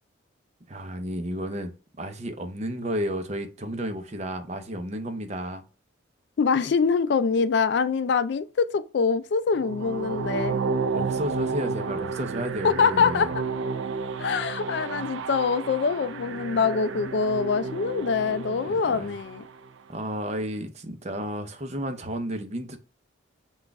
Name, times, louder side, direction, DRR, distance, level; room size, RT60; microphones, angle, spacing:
voice 1, 0.7-1.7 2.0-5.6 10.9-13.3 18.7-19.2 19.9-22.8, equal, 35° right, 0.6 m, -32 dB
voice 2, 6.4-10.6 12.6-13.3 14.2-19.4, left 5 dB, 60° left, 0.3 m, -24 dB
sound 1, 9.5-19.7, right 4 dB, 75° right, 0.5 m, -32 dB
5.9 x 2.4 x 3.5 m
head